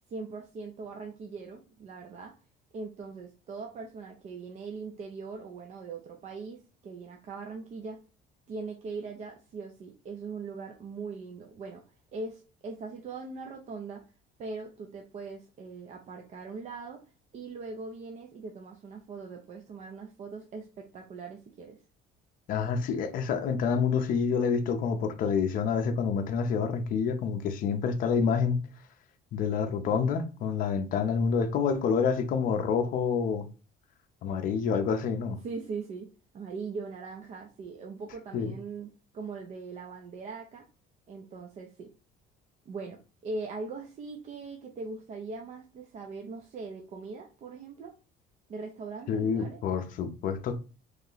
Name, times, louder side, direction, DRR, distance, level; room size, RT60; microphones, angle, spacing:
voice 1, 0.1-2.3 2.7-8.0 8.5-11.8 12.1-14.0 14.4-17.0 17.3-21.8 35.4-36.1 36.3-40.6 41.1-41.9 42.7-47.9 48.5-49.6, right 4 dB, 40° right, 0.5 m, -40 dB
voice 2, 22.5-28.6 29.3-33.5 34.2-35.4 38.3-38.5 49.1-50.6, left 6 dB, 45° left, 0.5 m, -28 dB
3.1 x 2.8 x 3.8 m
cardioid pair, 170°, 19 cm